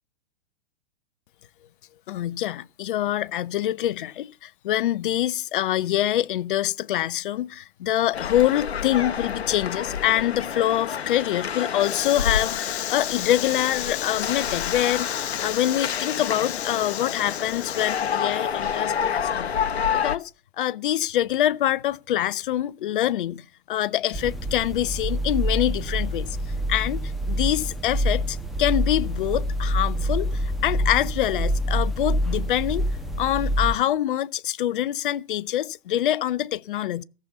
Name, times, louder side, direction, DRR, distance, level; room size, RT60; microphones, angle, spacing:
voice 1, 2.1-19.5 19.9-20.3 20.6-26.3 26.7-32.9 33.2-37.0, left 12 dB, 55° left, 0.6 m, -25 dB
sound 1, 8.1-20.2, left 7 dB, 75° left, 0.9 m, -29 dB
sound 2, 24.1-33.8, equal, ahead, 1.1 m, -26 dB
14.5 x 6.9 x 6.9 m
figure-of-eight pair, 110°, 32 cm